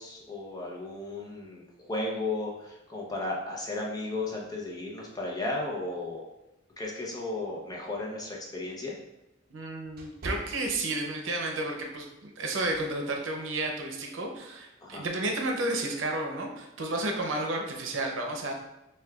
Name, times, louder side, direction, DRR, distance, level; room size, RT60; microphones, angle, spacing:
voice 1, 0.0-6.2 6.8-9.0 14.8-15.0, left 2 dB, 20° left, -2 dB, 0.7 m, -34 dB
sound 1, 7.8-11.4 11.8-12.1 12.7-13.0, right 1 dB, 50° right, 0.8 m, -43 dB
voice 2, 9.5-18.5, right 2 dB, 85° right, 1 dB, 0.7 m, -32 dB
6.3 x 2.3 x 2.3 m, 0.93 s
head